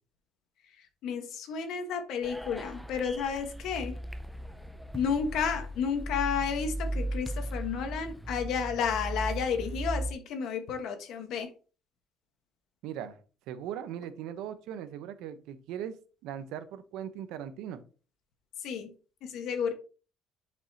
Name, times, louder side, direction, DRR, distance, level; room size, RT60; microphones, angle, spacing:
voice 1, 1.0-3.9 4.9-11.5 18.6-18.9 19.2-19.7, left 6 dB, 60° left, 6 dB, 1.4 m, -32 dB
sound 1, 2.2-10.1, right 1 dB, ahead, 0.4 m, -37 dB
voice 2, 12.8-13.2 13.5-15.9 16.2-17.8, right 9 dB, 80° right, 11 dB, 0.9 m, -39 dB
10.5 x 5.4 x 2.9 m, 0.36 s
cardioid pair, 180°, 0 cm